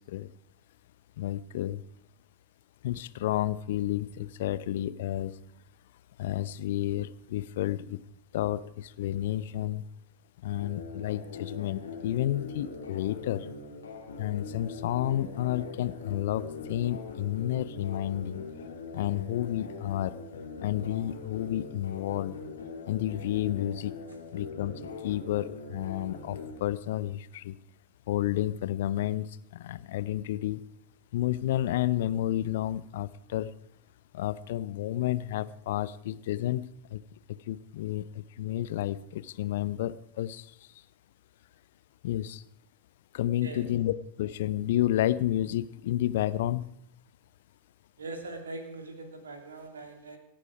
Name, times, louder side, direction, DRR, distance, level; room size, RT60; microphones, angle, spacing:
voice 1, 1.2-1.8 2.8-5.3 6.2-8.0 8.3-9.8 10.4-13.5 14.2-18.4 18.9-20.1 20.6-22.4 22.9-23.9 24.3-24.7 25.0-27.6 28.1-29.3 29.5-30.6 31.1-33.5 34.1-37.0 37.5-40.5 42.0-42.4 43.1-46.7, left 13 dB, 55° left, 17 dB, 0.7 m, -31 dB
sound 1, 10.6-26.6, left 4 dB, 70° left, 3.4 m, -42 dB
voice 2, 48.0-50.2, right 2 dB, 70° right, 5 dB, 2.5 m, -41 dB
25.5 x 10.0 x 4.9 m, 0.75 s
figure-of-eight pair, 90°, 0 cm